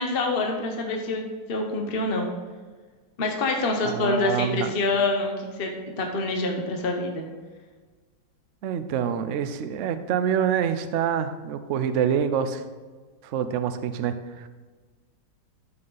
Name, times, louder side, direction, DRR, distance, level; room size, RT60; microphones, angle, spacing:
voice 1, 0.0-2.3 3.2-5.7 6.0-7.2, left 2 dB, 40° left, 2 dB, 0.9 m, -26 dB
voice 2, 3.8-4.7 8.6-12.6 13.2-14.5, right 8 dB, 80° right, 10 dB, 0.6 m, -26 dB
12.5 x 5.9 x 3.9 m, 1.4 s
omnidirectional pair, 2.0 m